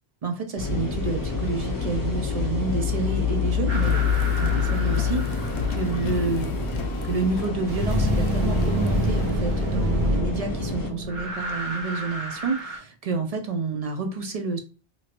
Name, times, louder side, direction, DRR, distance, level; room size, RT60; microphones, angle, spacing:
voice 1, 0.2-4.0 4.4-6.6 7.0-14.6, right 4 dB, 45° right, 5 dB, 0.5 m, -29 dB
sound 1, 0.6-10.9, left 6 dB, 25° left, 0.5 m, -27 dB
Car, 3.7-9.4, left 6 dB, 85° left, 0.8 m, -38 dB
sound 2, 3.7-5.9 7.7-12.8, equal, 70° right, 1.2 m, -27 dB
3.0 x 2.9 x 2.5 m, 0.34 s
omnidirectional pair, 1.1 m